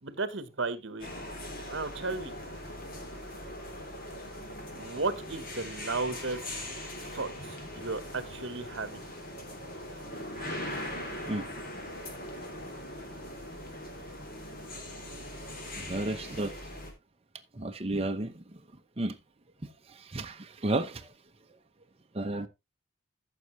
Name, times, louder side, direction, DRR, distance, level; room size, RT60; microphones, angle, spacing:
voice 1, 0.0-1.1 1.7-2.3 4.7-6.4 7.1-9.0, right 3 dB, 60° right, 1.2 m, -34 dB
sound 1, 1.0-16.9, left 1 dB, 45° left, 3.3 m, -41 dB
voice 2, 15.7-16.5 17.5-18.6 19.0-19.2 19.9-21.1 22.1-22.5, right 2 dB, 30° right, 0.8 m, -32 dB
14.5 x 6.5 x 3.1 m
head